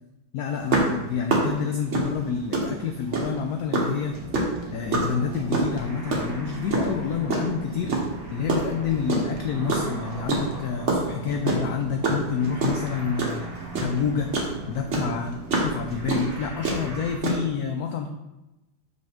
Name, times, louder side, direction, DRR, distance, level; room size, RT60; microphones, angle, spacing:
voice 1, 0.3-4.2 4.7-7.9 8.3-14.3 14.7-18.1, left 6 dB, 85° left, 5 dB, 0.8 m, -28 dB
sound 1, 0.7-3.4 3.7-7.5 7.9-9.4 9.7-14.5 14.9-17.4, right 3 dB, 40° right, 1.3 m, -25 dB
sound 2, 4.0-17.2, right 2 dB, 25° right, 0.9 m, -38 dB
6.4 x 5.5 x 3.5 m, 0.99 s
omnidirectional pair, 2.2 m